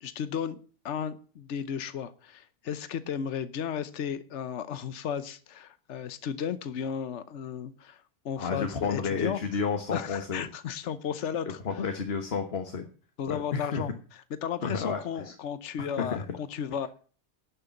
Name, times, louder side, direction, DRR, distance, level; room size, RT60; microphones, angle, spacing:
voice 1, 0.0-0.6 0.8-9.4 9.9-11.6 13.2-16.9, left 8 dB, 75° left, 13 dB, 1.2 m, -34 dB
voice 2, 8.4-10.5 11.5-12.9 13.3-13.8 14.6-15.3 15.8-16.2, left 5 dB, 55° left, 6 dB, 1.6 m, -31 dB
12.0 x 6.7 x 9.1 m, 0.41 s
omnidirectional pair, 1.2 m